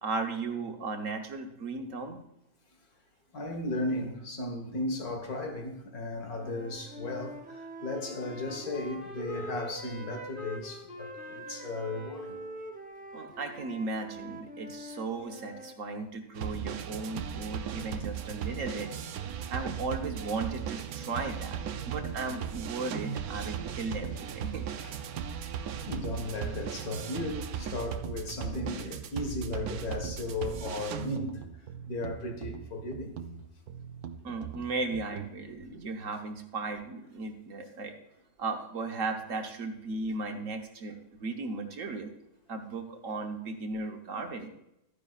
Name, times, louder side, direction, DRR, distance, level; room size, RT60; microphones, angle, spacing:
voice 1, 0.0-2.2 13.1-18.9 19.5-21.6 21.8-24.6 34.2-37.9 38.4-42.1 42.5-44.5, right 3 dB, 60° right, 1.4 m, -36 dB
voice 2, 3.3-12.4 24.8-24.9 25.9-31.5 31.9-33.2 35.5-35.8, left 2 dB, 85° left, 2.1 m, -36 dB
Wind instrument woodwind instrument, 6.3-10.7 11.0-15.8, right 1 dB, 10° right, 0.4 m, -45 dB
Wind instrument woodwind instrument 2, 7.9-12.7, left 2 dB, 40° left, 1.0 m, -46 dB
sound 1, 16.3-35.3, right 8 dB, 80° right, 1.2 m, -37 dB
13.0 x 9.9 x 2.4 m
omnidirectional pair, 1.5 m